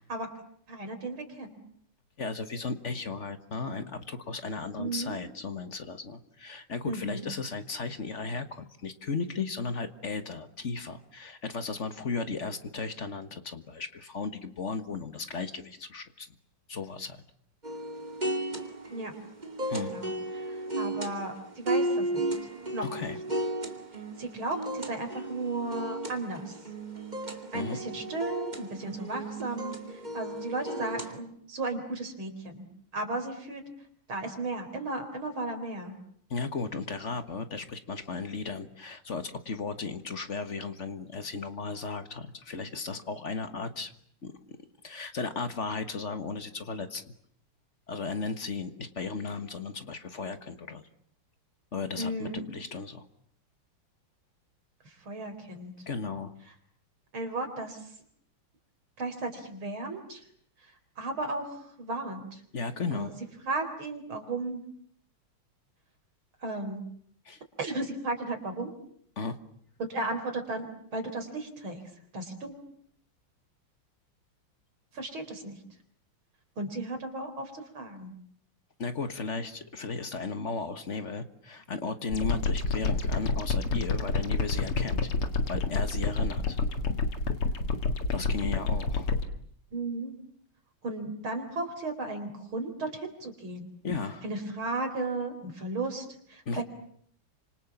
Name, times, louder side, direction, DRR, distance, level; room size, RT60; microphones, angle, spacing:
voice 1, 0.7-1.6 4.8-5.1 6.8-7.3 18.9-19.1 19.7-22.1 22.7-23.0 24.2-26.6 27.5-32.6 32.9-33.6 34.1-35.9 52.0-52.4 54.8-55.7 57.1-57.9 59.0-60.2 60.6-62.4 62.9-63.1 63.4-64.6 66.4-66.8 67.6-68.7 69.8-71.8 72.1-72.5 74.9-75.6 76.6-78.1 89.7-90.1 90.8-93.7 94.2-96.6, right 2 dB, 65° right, 6 dB, 4.9 m, -35 dB
voice 2, 2.2-16.3 16.7-17.2 19.7-19.9 22.9-23.2 27.5-27.8 36.3-43.9 44.2-44.6 44.8-47.0 47.9-50.8 51.7-53.1 55.9-56.3 62.5-63.1 67.2-67.4 69.2-69.4 78.8-85.1 85.5-86.6 88.1-89.1 93.8-94.2 96.4-96.6, left 4 dB, 35° left, 10 dB, 1.6 m, -35 dB
sound 1, 17.6-31.2, right 1 dB, 20° right, 2.4 m, -35 dB
sound 2, 82.1-89.2, left 3 dB, 90° left, 3.0 m, -28 dB
29.5 x 26.5 x 7.2 m, 0.64 s
omnidirectional pair, 2.4 m